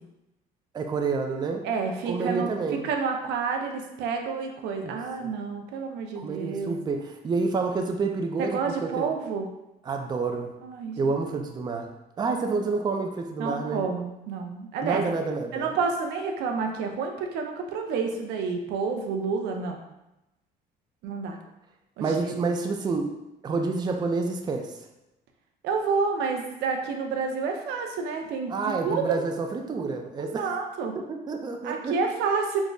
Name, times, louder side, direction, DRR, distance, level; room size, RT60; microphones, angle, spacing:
voice 1, 0.7-1.7 2.0-2.9 4.8-4.9 5.2-5.3 6.2-9.1 9.9-10.5 11.0-13.9 14.8-15.7 22.0-23.2 23.4-24.7 28.5-30.5 31.1-32.0, right 4 dB, 25° right, 4 dB, 0.4 m, -29 dB
voice 2, 1.6-6.8 8.4-9.5 10.6-11.1 13.4-15.0 15.5-19.8 21.0-21.4 22.0-22.1 25.6-29.2 30.2-31.0 31.6-32.6, right 5 dB, 85° right, 3 dB, 0.5 m, -29 dB
3.5 x 2.0 x 3.8 m, 0.93 s
cardioid pair, 110°, 17 cm